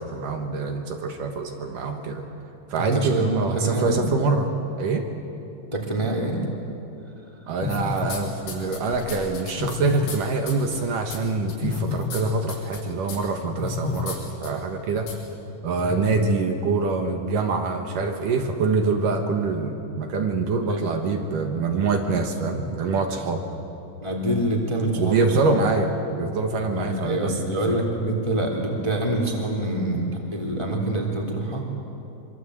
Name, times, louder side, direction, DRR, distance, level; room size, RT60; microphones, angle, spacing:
voice 1, 0.0-2.2 2.7-4.5 4.8-5.1 7.5-15.1 15.6-23.4 25.0-27.8, right 3 dB, 65° right, 4 dB, 2.2 m, -25 dB
voice 2, 2.8-3.3 3.5-4.1 5.7-6.4 15.8-16.1 20.6-20.9 24.0-25.5 26.7-31.6, right 1 dB, 10° left, -1 dB, 2.2 m, -26 dB
sound 1, 7.6-8.2 8.5-10.2 10.5-10.8 11.1-11.2 11.5-12.2 12.5-12.8 13.1-13.2 13.6-14.2 14.4-14.5 15.1-15.2, left 4 dB, 85° left, 7.3 m, -30 dB
25.5 x 25.5 x 8.0 m, 2.9 s
omnidirectional pair, 5.5 m